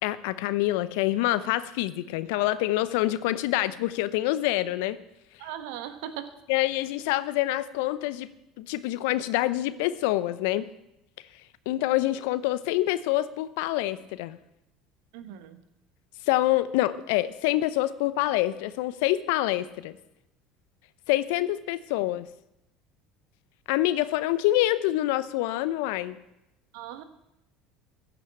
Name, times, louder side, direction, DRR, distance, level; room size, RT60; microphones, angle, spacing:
voice 1, 0.0-5.0 6.5-8.3 8.6-10.7 11.7-14.4 16.3-19.9 21.1-22.3 23.7-26.2, left 15 dB, 70° left, 14 dB, 0.7 m, -26 dB
voice 2, 5.4-6.3 15.1-15.6 26.7-27.0, right 10 dB, 70° right, 10 dB, 1.2 m, -38 dB
15.0 x 6.0 x 8.5 m, 0.87 s
hypercardioid pair, 70°, 0 cm